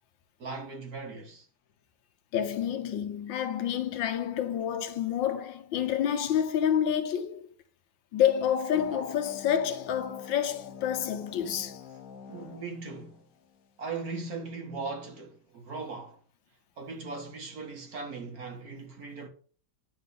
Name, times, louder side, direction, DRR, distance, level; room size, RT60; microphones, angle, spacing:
voice 1, 0.4-1.5 12.2-13.2 13.8-16.2 16.8-19.3, right 4 dB, 50° right, 1.8 m, -39 dB
voice 2, 2.3-7.5 8.1-11.8, left 9 dB, 75° left, 1.5 m, -28 dB
sound 1, 8.7-13.7, left 6 dB, 50° left, 1.1 m, -47 dB
10.5 x 3.9 x 6.6 m
omnidirectional pair, 2.2 m